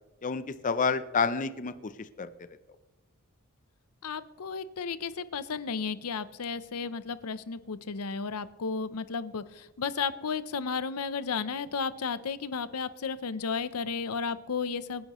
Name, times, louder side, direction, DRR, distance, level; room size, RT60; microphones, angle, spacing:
voice 1, 0.2-2.3, left 5 dB, 35° left, 12 dB, 0.6 m, -29 dB
voice 2, 4.0-15.1, left 5 dB, 80° left, 14 dB, 0.7 m, -33 dB
25.5 x 10.5 x 3.1 m, 1.2 s
head